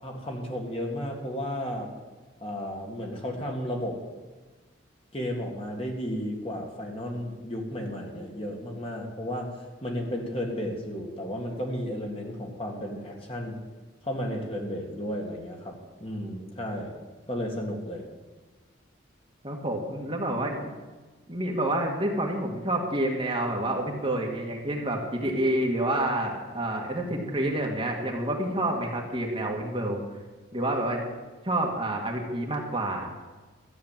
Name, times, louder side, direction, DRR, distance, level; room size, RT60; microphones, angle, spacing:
voice 1, 0.0-1.9 2.4-4.0 5.1-13.6 14.0-16.9 17.3-18.1 27.1-27.2, equal, 30° left, 1 dB, 1.9 m, -33 dB
voice 2, 19.4-20.7 21.3-30.0 30.5-31.0 31.4-33.1, right 1 dB, 25° right, 0 dB, 1.6 m, -28 dB
13.5 x 8.6 x 7.3 m, 1.3 s
head